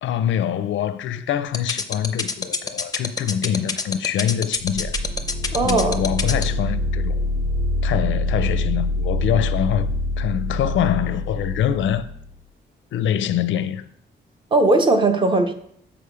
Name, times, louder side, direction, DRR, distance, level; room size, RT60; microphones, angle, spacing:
voice 1, 0.0-4.9 5.6-7.2 7.8-12.1 12.9-13.9, left 9 dB, 85° left, 0.5 m, -24 dB
sound 1, 1.5-6.4, left 5 dB, 20° left, 0.5 m, -24 dB
sound 2, 4.6-12.3, left 2 dB, 65° right, 1.7 m, -25 dB
voice 2, 5.5-6.0 14.5-15.5, right 2 dB, 25° right, 0.6 m, -18 dB
7.0 x 5.0 x 5.0 m
wide cardioid pair, 170°, 19 cm